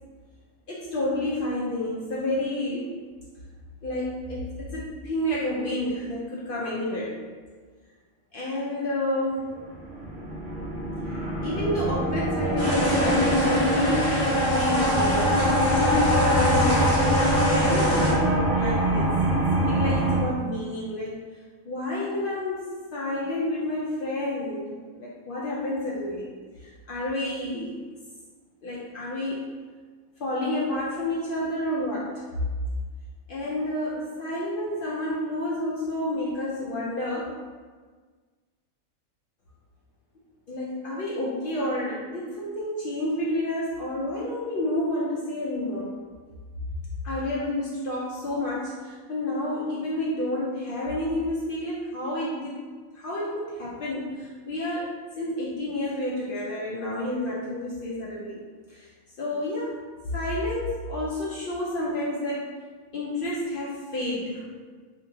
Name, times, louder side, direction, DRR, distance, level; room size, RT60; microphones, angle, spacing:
voice 1, 0.7-3.0 3.8-7.2 8.3-9.5 11.4-15.4 15.9-17.0 17.3-19.4 19.6-21.2 21.6-26.3 26.6-27.8 28.6-29.5 30.2-32.5 33.3-37.3 40.5-46.0 47.0-52.6 52.9-58.4 58.7-58.9 59.2-59.8 60.1-62.5 62.9-64.4, left 1 dB, 75° left, -6 dB, 0.4 m, -30 dB
sound 1, 9.5-20.2, right 1 dB, 40° right, 0.9 m, -25 dB
sound 2, 12.6-18.1, left 1 dB, 40° left, 0.8 m, -24 dB
2.7 x 2.6 x 3.6 m, 1.5 s
omnidirectional pair, 1.5 m